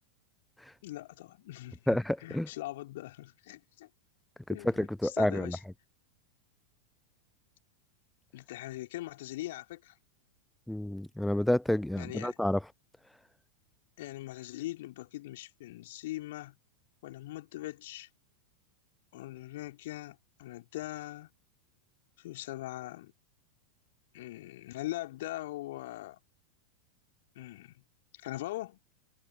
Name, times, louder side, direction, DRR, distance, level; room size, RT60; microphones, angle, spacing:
voice 1, 0.8-3.9 4.5-5.6 8.3-10.0 12.0-12.4 14.0-16.6 17.0-18.1 19.1-21.3 22.2-23.1 24.1-26.2 27.4-27.8 28.1-28.8, left 16 dB, 55° left, 3.5 m, -41 dB
voice 2, 1.9-2.5 4.6-5.6 10.7-12.6, left 1 dB, 5° left, 0.9 m, -29 dB
figure-of-eight pair, 90°, 0 cm